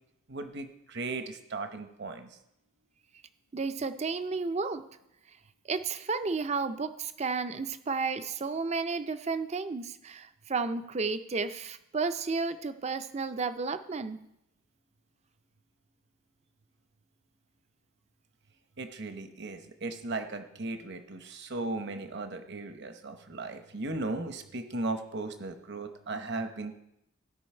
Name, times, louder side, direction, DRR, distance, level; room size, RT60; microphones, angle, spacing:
voice 1, 0.3-2.4 18.8-26.8, right 2 dB, 50° right, 7 dB, 0.9 m, -37 dB
voice 2, 3.5-4.9 5.7-14.2, right 4 dB, 30° right, 11 dB, 0.4 m, -32 dB
16.0 x 5.4 x 4.4 m, 0.82 s
head